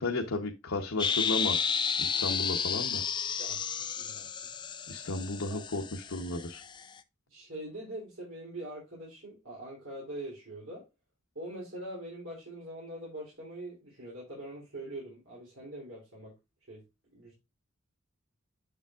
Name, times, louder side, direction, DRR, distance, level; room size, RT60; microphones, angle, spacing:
voice 1, 0.0-1.7 2.0-3.0 4.9-6.6, left 2 dB, 80° left, 1.0 m, -34 dB
sound 1, 1.0-6.8, left 7 dB, 20° left, 0.5 m, -32 dB
voice 2, 4.0-4.3 5.5-5.6 7.3-10.8 11.3-16.3 16.7-16.8 17.1-17.3, right 1 dB, 65° right, 3.2 m, -43 dB
7.1 x 7.0 x 2.4 m
head